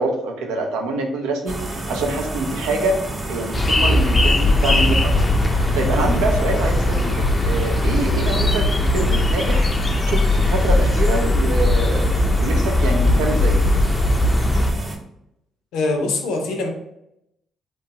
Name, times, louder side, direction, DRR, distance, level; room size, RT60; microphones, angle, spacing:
voice 1, 0.0-1.6 1.9-2.9 3.3-5.1 5.7-7.1 7.4-9.7 10.0-13.6, right 2 dB, 85° right, 3 dB, 0.5 m, -25 dB
sound 1, 1.5-15.0, right 1 dB, 35° right, 0.7 m, -31 dB
sound 2, 3.5-14.7, left 2 dB, 30° left, 0.4 m, -19 dB
voice 2, 15.7-16.7, left 3 dB, 85° left, 3 dB, 0.5 m, -23 dB
2.8 x 2.2 x 2.8 m, 0.80 s
supercardioid pair, 65°, 0 cm